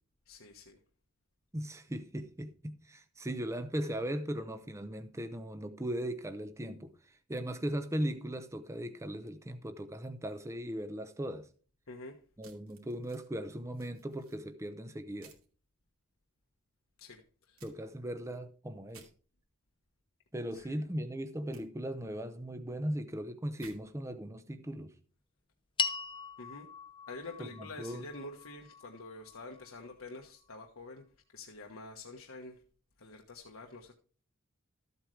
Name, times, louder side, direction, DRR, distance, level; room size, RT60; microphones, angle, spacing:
voice 1, 0.3-0.8 11.9-12.2 17.0-17.6 20.5-20.9 26.4-26.7 27.1-31.0 31.3-32.6 33.0-33.9, left 2 dB, 75° left, 1.3 m, -47 dB
voice 2, 1.5-11.5 12.4-15.3 17.6-19.1 20.3-25.0 27.4-28.1, right 1 dB, 15° right, 0.7 m, -38 dB
sound 1, 12.4-13.3 13.7-14.4 15.2-15.5 17.6-17.7 18.9-19.1 21.5-21.6 23.6-23.8, right 5 dB, 85° right, 2.7 m, -56 dB
sound 2, 25.8-30.2, left 5 dB, 25° left, 0.7 m, -40 dB
14.0 x 8.1 x 3.3 m
head